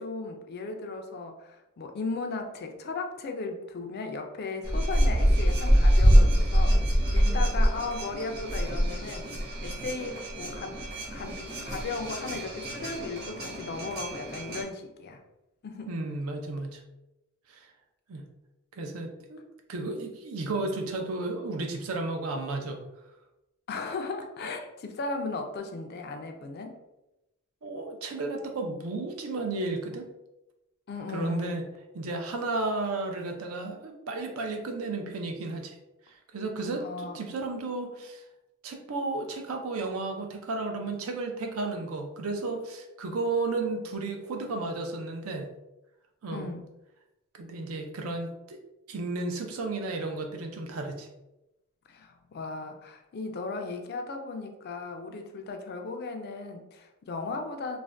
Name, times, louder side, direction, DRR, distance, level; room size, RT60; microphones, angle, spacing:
voice 1, 0.0-9.3 9.6-10.8 11.1-15.2 15.6-15.9 23.7-26.8 30.9-31.6 36.8-37.2 46.3-46.6 51.9-57.8, left 3 dB, 50° left, 5 dB, 0.4 m, -36 dB
sound 1, 4.6-14.6, equal, 45° right, 1.1 m, -25 dB
voice 2, 15.9-16.8 17.5-17.7 18.1-18.2 18.7-19.4 19.7-22.8 27.6-30.1 31.1-31.6 31.9-35.8 36.3-38.2 38.6-45.5 46.2-46.5 47.3-48.6 48.9-51.1, right 3 dB, 80° right, 4 dB, 0.5 m, -33 dB
2.5 x 2.1 x 3.2 m, 0.94 s
head